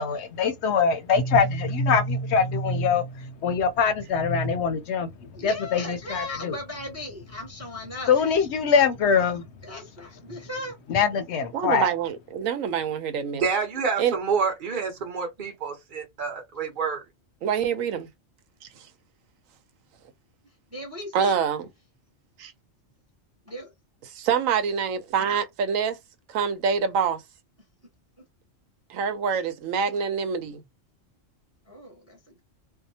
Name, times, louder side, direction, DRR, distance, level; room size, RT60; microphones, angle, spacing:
voice 1, 0.0-5.1 5.4-6.6 8.1-9.4 10.9-11.9, left 5 dB, 65° left, 0.8 m, -23 dB
voice 2, 5.3-8.1 9.6-10.7 20.7-21.3 23.5-23.7 31.7-32.2, left 1 dB, 15° right, 0.7 m, -37 dB
voice 3, 11.5-13.4 14.0-14.2 17.4-18.1 21.1-21.7 22.4-22.5 24.0-26.0 26.3-27.2 28.9-30.6, right 7 dB, 85° right, 1.0 m, -26 dB
voice 4, 13.3-17.0, right 5 dB, 40° right, 1.0 m, -28 dB
2.7 x 2.1 x 2.7 m
omnidirectional pair, 1.4 m